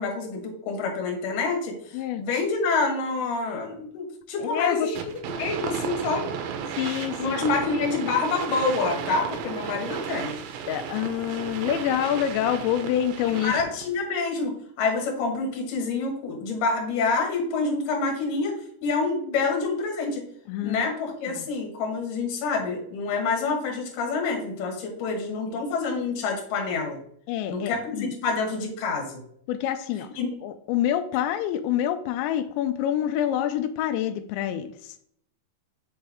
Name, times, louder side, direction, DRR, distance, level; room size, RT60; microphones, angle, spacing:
voice 1, 0.0-1.7 2.2-5.0 5.3-6.3 7.2-10.3 13.4-14.5 14.8-20.2 20.6-27.0 27.5-29.2 30.2-30.3, left 4 dB, 60° left, 1 dB, 2.7 m, -27 dB
voice 2, 4.4-4.9 6.8-7.4 10.7-13.5 20.5-20.8 21.3-21.5 25.5-25.6 27.3-28.1 29.5-30.1 30.4-34.9, left 11 dB, 90° left, 8 dB, 2.9 m, -27 dB
sound 1, 5.0-13.9, right 7 dB, 85° right, 2.2 m, -34 dB
6.7 x 4.4 x 3.5 m, 0.65 s
omnidirectional pair, 5.0 m